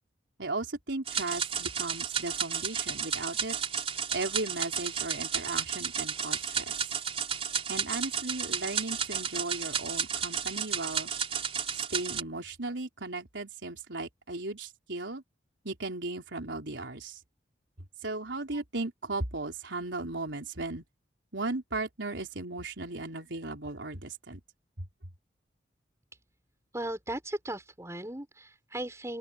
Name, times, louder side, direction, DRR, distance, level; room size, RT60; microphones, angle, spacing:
voice 1, 0.4-3.6 4.1-6.7 7.7-11.1 11.7-15.2 15.6-17.2 18.0-20.8 21.3-24.4, right 2 dB, 90° right, 4.1 m, -36 dB
sound 1, 1.1-12.2, right 7 dB, 35° right, 4.1 m, -32 dB
voice 2, 26.7-29.2, right 1 dB, 15° right, 6.3 m, -37 dB
open air
head